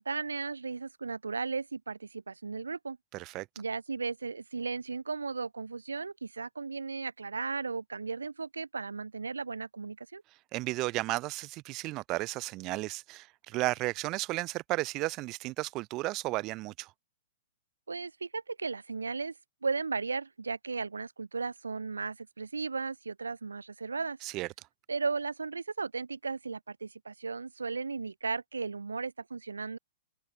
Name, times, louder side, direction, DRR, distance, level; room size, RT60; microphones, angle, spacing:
voice 1, 0.0-3.0 3.6-10.2 17.9-19.3 19.6-24.2 24.9-29.8, right 4 dB, 85° right, 1.3 m, -35 dB
voice 2, 3.1-3.5 10.5-16.9 24.2-24.5, right 20 dB, 35° right, 0.6 m, -33 dB
figure-of-eight pair, 110°, 0 cm